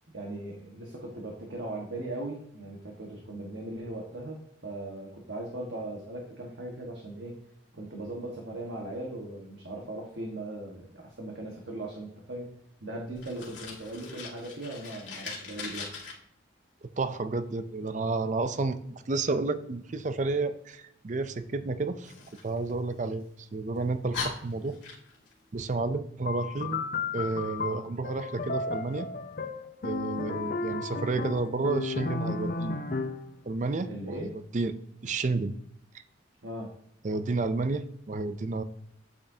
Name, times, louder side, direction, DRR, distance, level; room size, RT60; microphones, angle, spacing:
voice 1, 0.1-7.4 7.7-12.5 12.8-16.0 33.9-34.3 36.4-36.7, right 1 dB, 70° right, -1 dB, 1.4 m, -39 dB
Fire, 13.1-16.1 22.0-23.3 23.8-23.9 24.1-25.3, left 4 dB, 70° left, 2.1 m, -40 dB
voice 2, 17.0-18.8 19.1-22.1 22.4-24.8 25.5-26.8 27.1-29.1 29.8-32.8 33.4-34.7 35.0-35.5 37.0-38.6, right 3 dB, 40° right, 11 dB, 0.5 m, -31 dB
sound 1, 26.3-33.3, left 3 dB, 45° left, 0.5 m, -33 dB
8.7 x 8.6 x 2.8 m, 0.72 s
head